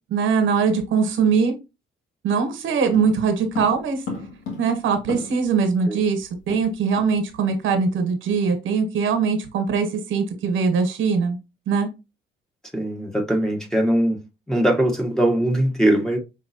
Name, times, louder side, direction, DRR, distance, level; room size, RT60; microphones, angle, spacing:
voice 1, 0.1-1.6 2.2-4.0 4.6-11.4 11.7-11.9, right 5 dB, 80° right, 1.0 m, -21 dB
sound 1, 2.9-5.6 5.9-6.0 6.2-7.2 7.5-7.7 8.1-8.3, left 4 dB, 85° left, 1.9 m, -35 dB
voice 2, 12.7-14.2 14.5-16.2, right 1 dB, 5° left, 1.1 m, -21 dB
5.4 x 3.0 x 2.7 m
cardioid pair, 90°, 20 cm